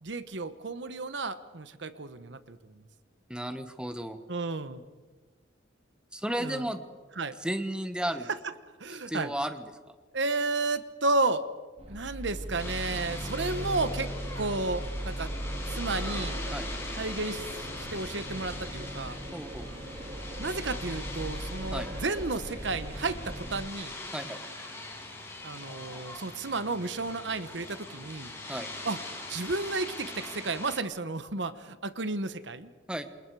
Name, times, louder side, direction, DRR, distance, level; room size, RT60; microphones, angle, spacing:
voice 1, 0.0-2.6 4.3-4.8 6.4-6.7 7.2-7.4 8.8-9.3 10.1-11.5 11.9-15.3 15.7-16.4 16.9-19.2 20.4-23.9 25.4-28.3 28.8-29.0 29.3-32.7, right 3 dB, 65° right, 12 dB, 1.1 m, -32 dB
voice 2, 3.3-4.2 6.1-6.8 7.4-8.3 9.1-9.6 16.5-16.7 19.3-19.7 21.7-21.9 24.1-24.4 28.5-28.7 32.9-33.1, right 1 dB, 5° right, 8 dB, 1.3 m, -33 dB
sound 1, 11.8-23.6, right 1 dB, 30° right, 2.2 m, -38 dB
sound 2, 12.6-30.8, left 2 dB, 15° left, 5.4 m, -42 dB
28.5 x 27.0 x 4.8 m, 1.4 s
head